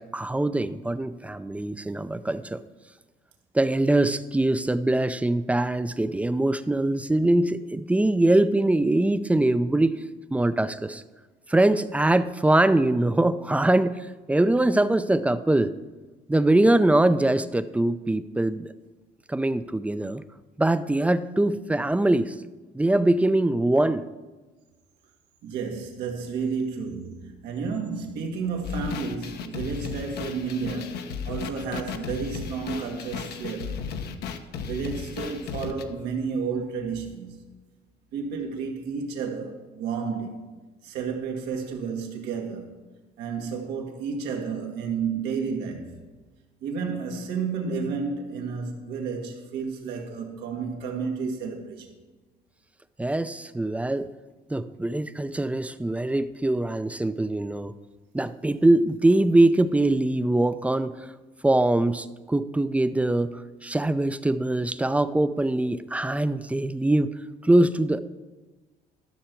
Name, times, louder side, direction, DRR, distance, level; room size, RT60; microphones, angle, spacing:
voice 1, 0.0-2.6 3.5-10.0 10.3-11.0 11.5-15.7 16.3-18.7 19.3-20.2 20.6-22.3 22.7-24.0 53.0-54.1 54.5-57.7 58.1-60.9 61.4-67.1 67.4-68.0, right 1 dB, 10° right, 0.4 m, -23 dB
voice 2, 25.4-33.8 34.6-37.4 38.1-42.7 43.2-45.9 46.6-51.9, right 5 dB, 85° right, 1.8 m, -31 dB
sound 1, 28.6-35.8, left 6 dB, 75° left, 0.9 m, -35 dB
13.0 x 6.7 x 4.5 m
cardioid pair, 110°, 17 cm